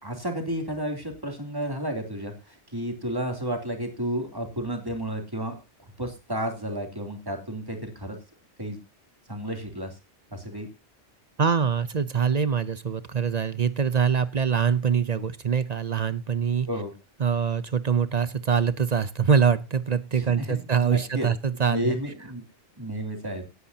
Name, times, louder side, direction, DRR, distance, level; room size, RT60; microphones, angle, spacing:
voice 1, 0.0-5.6 6.0-8.2 8.6-8.8 9.3-9.9 10.3-10.7 16.7-16.9 20.1-21.3 21.6-22.4 22.8-23.5, equal, 20° right, 3 dB, 2.9 m, -32 dB
voice 2, 11.4-16.7 17.2-21.9, right 7 dB, 45° right, 15 dB, 0.7 m, -24 dB
17.5 x 9.7 x 2.8 m, 0.26 s
omnidirectional pair, 1.1 m